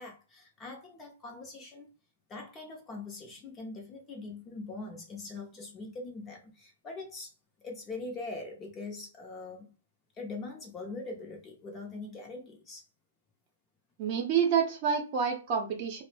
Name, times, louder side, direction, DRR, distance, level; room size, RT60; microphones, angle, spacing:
voice 1, 0.0-1.9 2.3-7.3 7.6-9.7 10.2-12.8, left 3 dB, 20° left, 1 dB, 0.6 m, -42 dB
voice 2, 14.0-16.0, right 7 dB, 40° right, 2 dB, 0.7 m, -28 dB
2.0 x 2.0 x 3.2 m, 0.33 s
hypercardioid pair, 145°, 0 cm